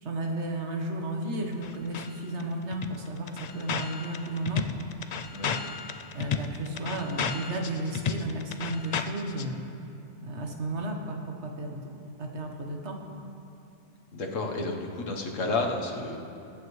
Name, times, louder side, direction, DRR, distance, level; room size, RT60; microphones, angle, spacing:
voice 1, 0.0-4.6 6.1-9.6 10.2-11.9 12.2-13.0, right 1 dB, 65° right, 2 dB, 1.5 m, -33 dB
sound 1, 1.6-2.1 2.4-2.5 2.7-9.4, left 6 dB, 65° left, 0.4 m, -32 dB
voice 2, 14.1-16.2, left 2 dB, 90° left, 1 dB, 1.6 m, -31 dB
22.5 x 8.7 x 3.2 m, 2.7 s
omnidirectional pair, 1.3 m